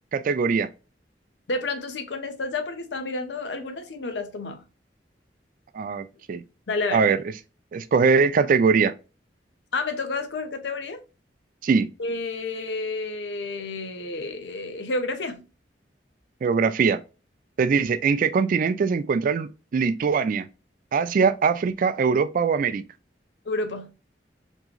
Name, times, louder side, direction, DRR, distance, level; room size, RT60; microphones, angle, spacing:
voice 1, 0.1-0.7 5.7-6.4 6.9-7.2 7.7-8.9 11.6-11.9 16.4-17.0 17.6-20.5 20.9-22.8, right 5 dB, 50° right, 0.3 m, -22 dB
voice 2, 1.5-4.6 6.7-7.0 9.7-11.0 12.0-15.4 23.5-23.9, left 3 dB, 80° left, 0.6 m, -30 dB
3.6 x 2.9 x 2.3 m
head